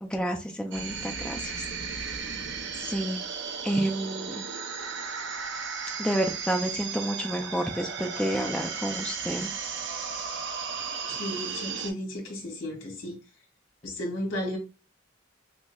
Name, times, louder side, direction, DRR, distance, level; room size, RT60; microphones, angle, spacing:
voice 1, 0.0-1.6 1.9-2.2 2.8-3.2 3.6-4.4 6.0-9.5, right 1 dB, 5° left, 0.3 m, -30 dB
sound 1, 0.7-11.9, right 5 dB, 60° right, 0.6 m, -35 dB
voice 2, 11.1-13.2 13.8-14.6, left 1 dB, 80° left, 1.7 m, -34 dB
6.0 x 2.1 x 2.3 m
head